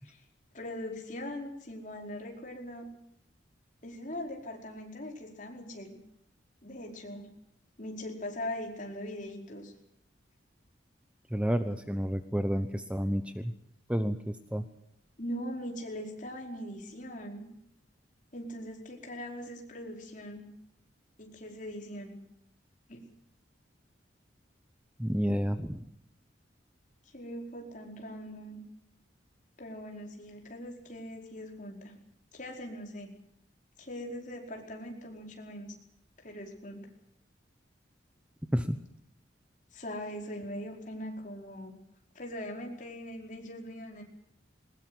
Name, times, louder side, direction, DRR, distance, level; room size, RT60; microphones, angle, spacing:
voice 1, 0.5-2.9 3.8-6.0 6.6-7.3 7.8-9.7 15.2-17.5 18.3-20.5 21.2-22.1 22.9-23.0 27.1-28.6 29.6-31.9 32.3-33.1 33.8-35.7 36.2-36.9 39.7-41.7 42.1-44.0, left 1 dB, 45° left, 2 dB, 4.8 m, -41 dB
voice 2, 11.3-13.5 13.9-14.6 25.0-25.8 38.5-38.8, equal, 5° right, 9 dB, 0.9 m, -30 dB
22.0 x 20.0 x 7.9 m, 0.77 s
head